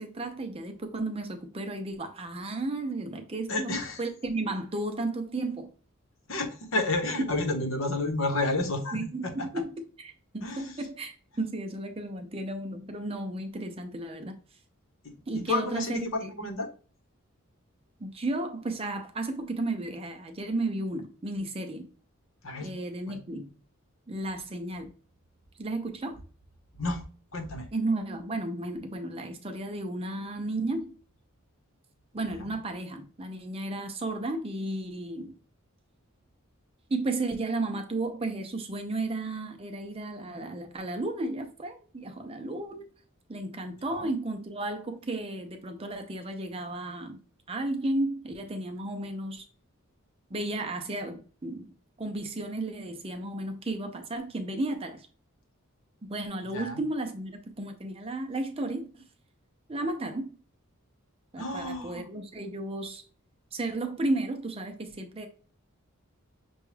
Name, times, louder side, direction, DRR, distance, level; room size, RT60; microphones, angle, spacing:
voice 1, 0.0-5.7 8.9-14.4 15.3-16.3 18.0-21.9 22.6-23.5 24.1-24.9 25.6-26.2 27.7-30.9 32.1-35.4 36.9-42.8 43.3-47.2 47.5-49.4 50.3-51.7 52.0-55.1 56.1-59.0 59.7-60.3 61.3-63.0 63.5-65.3, right 2 dB, 25° right, 0.5 m, -33 dB
voice 2, 3.5-4.0 6.3-9.5 10.4-10.8 15.3-16.1 16.4-16.7 22.4-22.7 23.1-23.2 26.8-27.0 27.3-27.6 32.4-32.5 43.9-44.1 56.5-56.8 61.4-62.1, left 2 dB, 70° left, 0.9 m, -31 dB
6.1 x 2.3 x 3.2 m
head